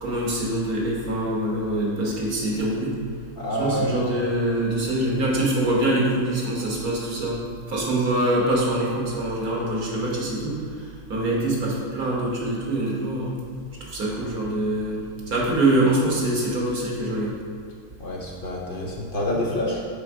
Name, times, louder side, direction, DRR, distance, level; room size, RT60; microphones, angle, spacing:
voice 1, 0.0-3.0 3.6-7.4 7.7-13.4 13.9-17.3, right 1 dB, 85° right, -4 dB, 1.9 m, -24 dB
voice 2, 3.4-4.1 18.0-19.9, left 1 dB, 50° left, -2 dB, 0.7 m, -27 dB
5.0 x 4.4 x 5.9 m, 2.1 s
omnidirectional pair, 1.5 m